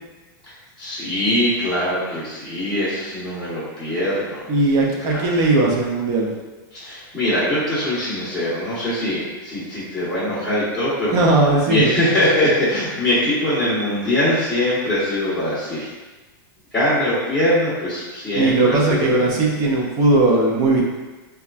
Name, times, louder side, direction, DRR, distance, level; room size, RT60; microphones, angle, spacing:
voice 1, 0.5-4.4 5.0-5.2 6.7-11.1 11.7-15.9 16.7-19.3, left 1 dB, 5° left, -16 dB, 0.9 m, -22 dB
voice 2, 4.5-6.3 11.1-11.9 18.3-20.8, right 2 dB, 30° right, -1 dB, 0.5 m, -18 dB
4.2 x 2.3 x 2.4 m, 1.2 s
supercardioid pair, 165°, 12 cm